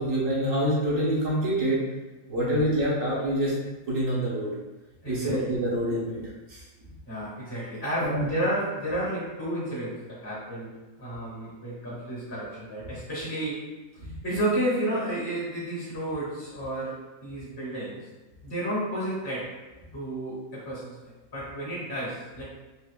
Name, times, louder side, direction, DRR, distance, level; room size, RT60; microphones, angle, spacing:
voice 1, 0.0-1.8 2.3-3.5 3.9-4.5 5.0-6.2 6.5-6.6 8.0-8.3, right 1 dB, 70° right, -6 dB, 1.3 m, -26 dB
voice 2, 5.0-5.5 7.1-13.8 14.2-18.1 18.4-19.5 19.9-22.4, right 1 dB, 20° left, -8 dB, 1.0 m, -32 dB
4.2 x 2.6 x 2.2 m, 1.1 s
omnidirectional pair, 1.5 m